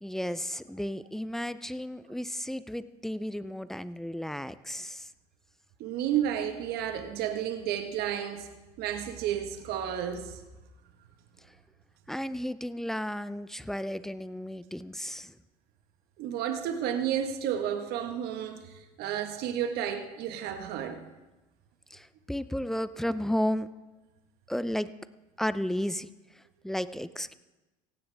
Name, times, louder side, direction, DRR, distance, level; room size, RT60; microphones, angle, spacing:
voice 1, 0.0-5.1 12.1-15.3 21.9-23.7 24.5-24.9 25.4-26.1 26.6-27.3, equal, ahead, 14 dB, 0.6 m, -33 dB
voice 2, 5.8-8.5 8.8-10.4 16.2-21.0, right 9 dB, 60° right, 6 dB, 1.6 m, -32 dB
17.5 x 16.0 x 3.5 m, 1.1 s
supercardioid pair, 90°, 18 cm